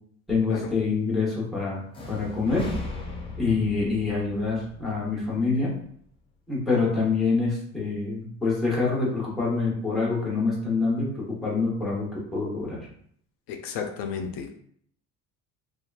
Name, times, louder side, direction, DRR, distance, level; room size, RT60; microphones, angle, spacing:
voice 1, 0.3-1.8 2.1-2.6 3.4-5.7 6.5-12.9, left 4 dB, ahead, -7 dB, 0.9 m, -26 dB
sound 1, 1.9-5.8, left 2 dB, 15° left, 0.5 m, -38 dB
voice 2, 13.5-14.6, left 6 dB, 75° left, 4 dB, 0.5 m, -33 dB
2.8 x 2.3 x 2.2 m, 0.63 s
cardioid pair, 140°, 33 cm